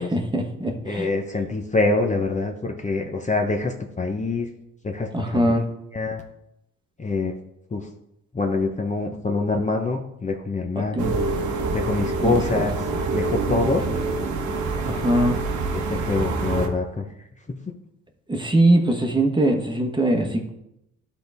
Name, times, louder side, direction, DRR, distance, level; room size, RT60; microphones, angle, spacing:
voice 1, 0.0-1.1 5.1-5.6 10.9-11.1 12.2-12.6 14.8-15.4 18.3-20.5, right 1 dB, 15° right, 3 dB, 1.2 m, -21 dB
voice 2, 0.8-4.5 4.8-5.6 5.9-6.2 7.0-7.3 7.7-7.9 8.3-11.3 11.7-13.8 15.7-17.0 17.5-17.6, left 3 dB, 25° left, 3 dB, 0.8 m, -25 dB
sound 1, 11.0-16.7, right 3 dB, 75° right, 1.2 m, -26 dB
12.0 x 4.0 x 3.5 m, 0.82 s
cardioid pair, 90°, 30 cm